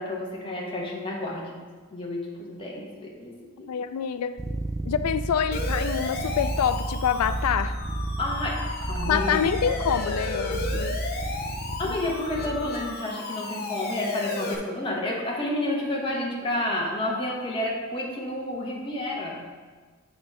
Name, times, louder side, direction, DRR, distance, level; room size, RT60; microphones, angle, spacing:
voice 1, 0.0-3.3 3.6-3.7 8.2-8.6 8.9-9.4 11.8-19.5, left 1 dB, 25° left, -3 dB, 1.2 m, -30 dB
voice 2, 3.7-4.4 4.8-7.8 9.0-11.0 11.8-12.0, left 8 dB, 90° left, 12 dB, 0.3 m, -26 dB
sound 1, 4.4-12.9, right 2 dB, 15° right, 0.3 m, -32 dB
Siren, 5.5-14.6, left 3 dB, 45° left, 0.8 m, -34 dB
7.8 x 3.2 x 5.4 m, 1.4 s
head